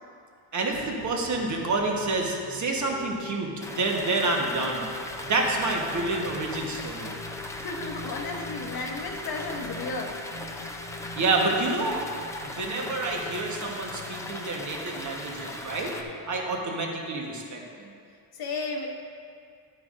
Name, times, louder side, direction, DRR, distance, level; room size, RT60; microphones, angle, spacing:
voice 1, 0.5-4.9 5.3-7.1 11.2-12.0 12.4-15.9 16.3-17.6, right 2 dB, 35° right, 0 dB, 1.2 m, -28 dB
sound 1, 0.7-16.6, left 2 dB, 85° left, 1.5 m, -44 dB
sound 2, 3.6-16.0, left 1 dB, 5° left, 0.4 m, -39 dB
voice 2, 7.5-10.2 12.3-12.4 18.3-18.9, left 3 dB, 45° left, 1 dB, 0.9 m, -34 dB
11.0 x 9.3 x 2.5 m, 2.3 s
cardioid pair, 135°, 49 cm